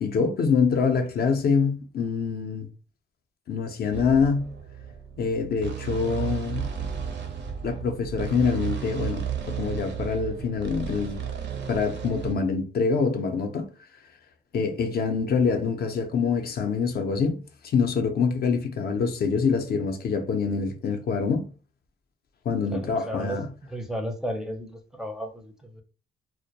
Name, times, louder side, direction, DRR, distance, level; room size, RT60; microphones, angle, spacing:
voice 1, 0.0-2.7 3.5-4.5 5.2-6.7 7.6-11.2 11.7-13.7 14.5-17.4 17.6-21.5 22.5-23.5, left 5 dB, 50° left, 0.5 m, -25 dB
sound 1, 3.9-12.3, right 8 dB, 60° right, 0.5 m, -33 dB
voice 2, 22.7-23.4 23.7-25.8, equal, 5° right, 0.4 m, -34 dB
2.1 x 2.1 x 2.8 m
cardioid pair, 90°, 20 cm